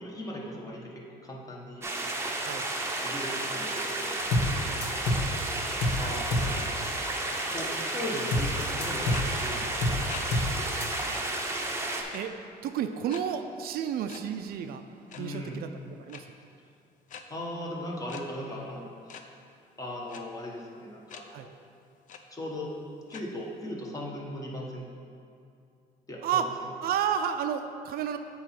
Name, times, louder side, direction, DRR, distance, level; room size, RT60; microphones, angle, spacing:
voice 1, 0.0-1.9 3.0-4.2 6.0-6.6 7.5-10.3 15.1-15.6 17.3-18.9 19.8-21.5 22.3-22.7 23.1-24.8 26.1-26.5, left 1 dB, 20° left, -2 dB, 1.2 m, -38 dB
sound 1, 1.8-12.0, right 2 dB, 15° right, 0.7 m, -32 dB
sound 2, 4.3-4.5 4.8-5.3 5.8-6.0 6.3-6.5 8.3-8.5 8.8-9.3 9.8-10.0 10.3-10.5 10.8-10.9, left 1 dB, 80° left, 1.0 m, -27 dB
sound 3, 8.1-8.2 9.1-9.2 10.1-10.2 10.6-10.7 11.1-11.2 12.1-12.4 13.1-13.2 14.1-14.2 15.0-15.2 16.1-16.2 17.1-17.2 18.1-18.2 19.1-19.2 20.1-20.2 21.1-21.2 21.7-21.8 22.1-22.2 23.1-23.2, left 7 dB, 50° left, 0.5 m, -43 dB
voice 2, 10.5-11.2 12.1-12.3 12.6-14.8 15.2-15.7 16.1-16.2 21.3-21.5 26.2-26.5 26.8-28.2, right 8 dB, 65° right, 8 dB, 0.4 m, -31 dB
8.5 x 3.1 x 5.9 m, 2.5 s
cardioid pair, 110°, 17 cm